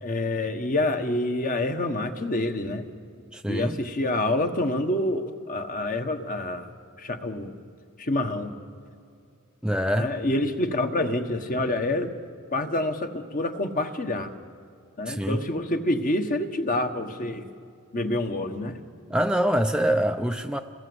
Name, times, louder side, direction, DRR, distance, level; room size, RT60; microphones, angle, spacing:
voice 1, 0.0-2.8 3.5-6.7 7.0-7.6 8.0-8.5 9.9-12.1 12.5-14.3 15.0-17.5 17.9-18.8, left 1 dB, 40° left, 6 dB, 1.5 m, -27 dB
voice 2, 3.3-3.8 9.6-10.1 15.1-15.4 19.1-20.6, equal, 5° right, 5 dB, 0.6 m, -25 dB
29.0 x 20.5 x 8.0 m, 2.4 s
head